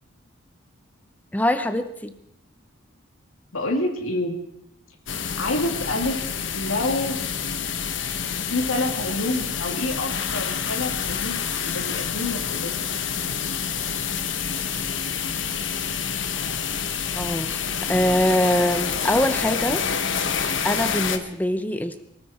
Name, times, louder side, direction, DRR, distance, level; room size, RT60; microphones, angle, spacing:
voice 1, 1.3-2.1 17.2-19.8 20.6-22.0, left 1 dB, 10° left, 10 dB, 0.7 m, -23 dB
voice 2, 3.5-4.4 5.3-6.2 6.5-7.2 8.5-13.6, left 2 dB, 90° left, 3 dB, 2.5 m, -28 dB
sound 1, 5.1-21.2, left 7 dB, 65° left, 1.2 m, -28 dB
24.0 x 13.5 x 4.4 m, 0.78 s
head